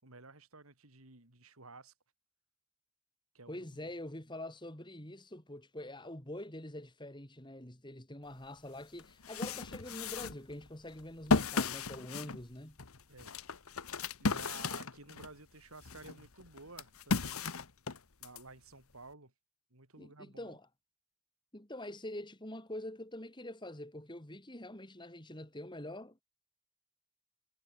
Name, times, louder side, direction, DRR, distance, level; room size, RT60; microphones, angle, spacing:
voice 1, 0.0-1.9 3.3-3.9 13.1-13.4 14.2-17.5 18.2-19.3 19.7-20.6, right 3 dB, 85° right, 4.3 m, -53 dB
voice 2, 3.5-12.8 20.0-20.6 21.5-26.2, left 1 dB, 20° left, 3.6 m, -45 dB
sound 1, 8.5-8.6 9.0-15.4 15.8-18.4, left 4 dB, 90° left, 1.4 m, -35 dB
head